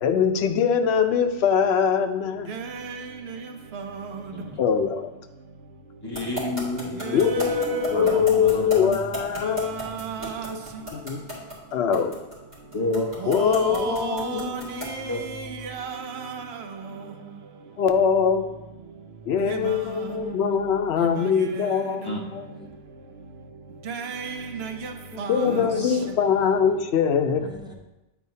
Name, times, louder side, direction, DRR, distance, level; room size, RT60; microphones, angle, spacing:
voice 1, 0.0-2.5 4.6-5.1 7.1-9.8 10.9-11.2 11.7-12.1 13.3-13.8 14.3-14.8 17.8-18.5 19.3-22.4 25.3-27.5, left 7 dB, 85° left, 0.9 m, -22 dB
voice 2, 2.5-3.0 3.7-4.1 7.0-8.1 9.6-10.5 13.2-16.4 19.5-19.8 23.9-24.9 25.2-25.7, right 5 dB, 80° right, 0.9 m, -33 dB
voice 3, 6.0-9.0 10.2-10.3 12.7-13.7 14.6-14.7 15.1-15.2 16.9-17.0 22.0-22.2 25.4-26.0, left 1 dB, 25° left, 1.0 m, -31 dB
sound 1, 6.1-15.0, equal, 45° right, 2.4 m, -33 dB
voice 4, 13.7-15.2 16.8-17.4 19.9-20.7 21.1-22.0 22.6-22.7 25.1-26.3 27.4-27.7, left 1 dB, 5° right, 0.6 m, -36 dB
9.1 x 4.4 x 2.7 m
omnidirectional pair, 1.1 m